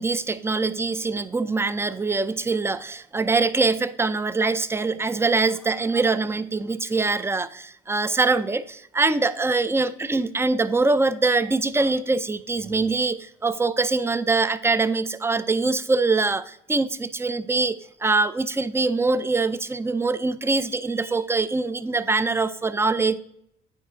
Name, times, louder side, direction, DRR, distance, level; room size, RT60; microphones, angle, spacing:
voice 1, 0.0-23.2, right 3 dB, 10° right, 15 dB, 0.4 m, -23 dB
9.1 x 4.9 x 3.6 m, 0.72 s
cardioid pair, 90°, 20 cm